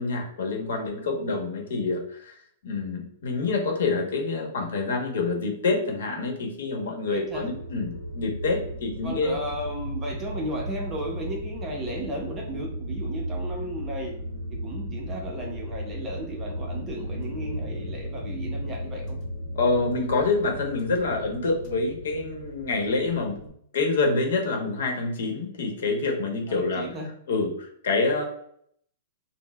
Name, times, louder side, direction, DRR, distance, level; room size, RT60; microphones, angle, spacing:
voice 1, 0.0-2.4 2.6-9.4 19.5-23.4 23.7-26.8 27.3-28.2, left 3 dB, 70° left, 2 dB, 0.9 m, -27 dB
voice 2, 7.1-7.5 9.0-14.1 14.5-19.2 24.4-24.5 26.5-27.1, right 1 dB, 15° right, 0 dB, 0.6 m, -34 dB
sound 1, 7.3-23.5, equal, 40° left, 1.5 m, -35 dB
4.3 x 2.0 x 2.2 m, 0.67 s
hypercardioid pair, 160°, 0 cm